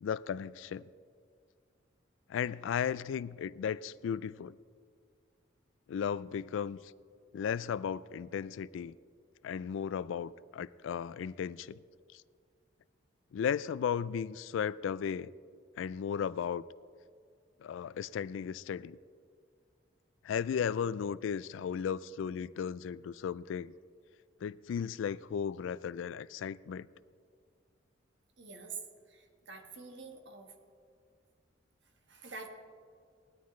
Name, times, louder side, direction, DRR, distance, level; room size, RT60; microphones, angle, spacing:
voice 1, 0.0-0.8 2.3-4.6 5.9-6.8 7.3-9.0 9.4-11.8 13.3-15.3 15.8-16.6 17.6-19.0 20.2-23.7 24.4-26.9, left 7 dB, 80° left, 0.3 m, -35 dB
voice 2, 28.4-28.8 29.1-30.5 32.1-32.5, right 4 dB, 65° right, 1.4 m, -46 dB
18.5 x 13.0 x 3.2 m
head